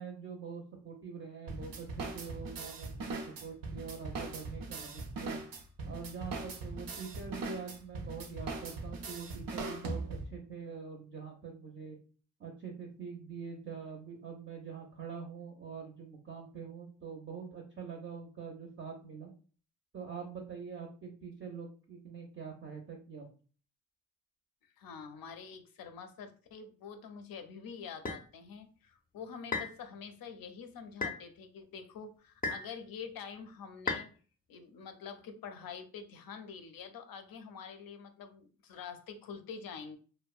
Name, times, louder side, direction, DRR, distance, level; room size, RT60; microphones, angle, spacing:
voice 1, 0.0-5.4 5.8-12.0 12.4-19.3 19.9-23.2, right 6 dB, 40° right, 1 dB, 0.5 m, -44 dB
sound 1, 1.5-10.4, right 3 dB, 90° right, 0.5 m, -40 dB
voice 2, 24.8-34.1 34.5-40.0, left 6 dB, 85° left, 7 dB, 0.5 m, -46 dB
sound 2, 28.1-28.2 29.5-29.8 31.0-31.2 32.4-32.7 33.9-34.1, left 4 dB, 25° left, 0.4 m, -34 dB
2.6 x 2.0 x 2.3 m, 0.39 s
wide cardioid pair, 130°, 34 cm